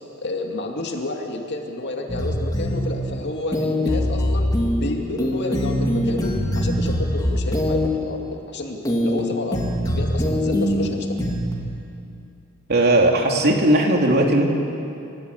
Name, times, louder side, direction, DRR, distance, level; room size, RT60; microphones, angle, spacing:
voice 1, 0.2-4.5 4.8-11.2, left 2 dB, 55° left, 1 dB, 2.6 m, -30 dB
sound 1, 2.1-2.9 3.5-4.9 5.2-7.9 8.8-9.2 9.5-10.9 11.2-11.5, equal, 20° left, 3.3 m, -22 dB
voice 2, 12.7-14.5, right 1 dB, 50° right, 1 dB, 2.8 m, -17 dB
30.0 x 15.5 x 8.4 m, 2.6 s
head